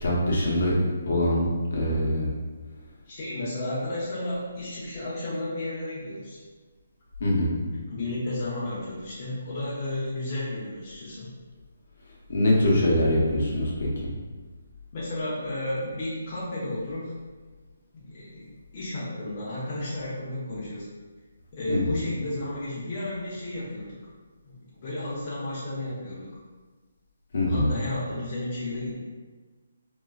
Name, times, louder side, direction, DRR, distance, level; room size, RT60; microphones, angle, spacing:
voice 1, 0.0-0.7 1.1-2.3 7.2-7.5 12.3-13.9 21.7-21.9 27.3-27.7, left 1 dB, 60° left, -4 dB, 0.8 m, -23 dB
voice 2, 3.1-6.4 7.9-11.3 14.9-17.1 17.9-20.9 21.5-24.0 24.4-26.4 27.5-29.0, left 1 dB, 30° left, -8 dB, 0.5 m, -33 dB
2.9 x 2.4 x 2.3 m, 1.4 s
hypercardioid pair, 170°, 0 cm